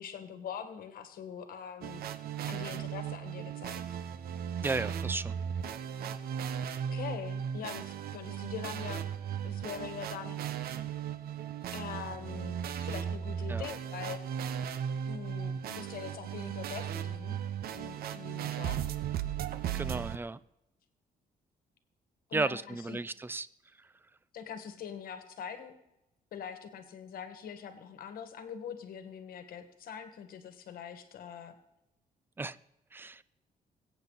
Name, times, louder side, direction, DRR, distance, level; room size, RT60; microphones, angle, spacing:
voice 1, 0.0-2.0 2.4-3.8 6.9-9.0 9.4-10.4 11.7-14.2 15.1-17.4 17.7-18.8 22.3-23.0 24.3-25.8 26.3-31.5, left 8 dB, 70° left, 8 dB, 1.7 m, -43 dB
sound 1, 1.8-20.2, right 8 dB, 75° right, 0.9 m, -36 dB
voice 2, 4.6-5.4 13.5-13.7 19.7-20.4 22.3-23.5 23.8-23.9 32.4-32.6 32.9-33.2, right 3 dB, 15° right, 17 dB, 0.5 m, -34 dB
21.5 x 9.1 x 4.1 m, 0.85 s
cardioid pair, 130°, 16 cm